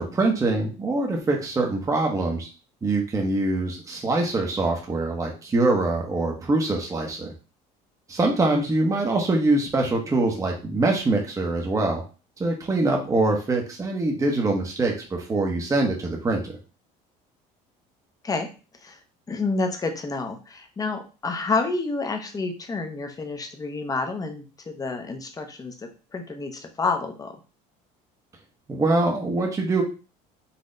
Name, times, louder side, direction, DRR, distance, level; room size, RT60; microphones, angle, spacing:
voice 1, 0.0-2.5 2.8-7.3 8.1-12.0 12.4-16.5 28.7-29.8, right 2 dB, 20° right, 1 dB, 1.0 m, -24 dB
voice 2, 19.3-27.3, left 3 dB, 20° left, 5 dB, 0.9 m, -29 dB
4.2 x 2.8 x 3.8 m, 0.34 s
cardioid pair, 120°, 16 cm